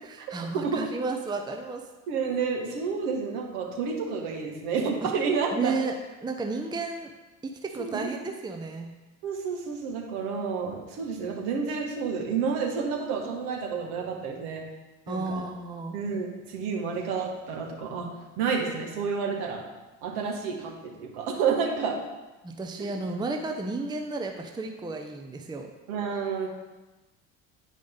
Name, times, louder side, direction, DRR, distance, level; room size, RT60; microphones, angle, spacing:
voice 1, 0.0-1.8 5.5-5.9 6.2-7.1 7.4-8.9 15.1-16.0 22.4-25.7, right 3 dB, 10° right, 3 dB, 0.7 m, -32 dB
voice 2, 2.1-5.8 7.8-8.1 9.2-14.6 15.1-15.4 15.9-18.1 18.4-19.6 20.0-21.9 25.9-26.5, right 5 dB, 65° right, 0 dB, 1.8 m, -30 dB
9.7 x 4.9 x 3.9 m, 1.1 s
figure-of-eight pair, 60°, 44 cm